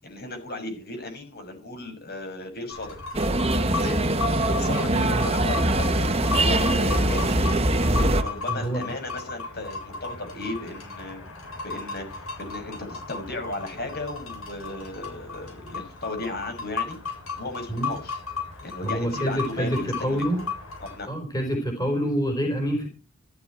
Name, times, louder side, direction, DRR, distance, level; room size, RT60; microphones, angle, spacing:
voice 1, 0.0-3.0 3.7-4.0 4.4-7.4 8.1-17.0 17.3-18.1 18.6-20.5 20.8-21.1, left 2 dB, 50° left, 6.1 m, -36 dB
sound 1, 2.7-21.0, left 4 dB, 85° left, 6.9 m, -36 dB
sound 2, 3.1-8.2, right 1 dB, 30° right, 1.5 m, -22 dB
voice 2, 4.8-5.3 8.5-8.8 17.7-17.9 18.8-20.4 21.0-22.9, equal, 20° left, 4.5 m, -27 dB
14.5 x 14.0 x 4.6 m
head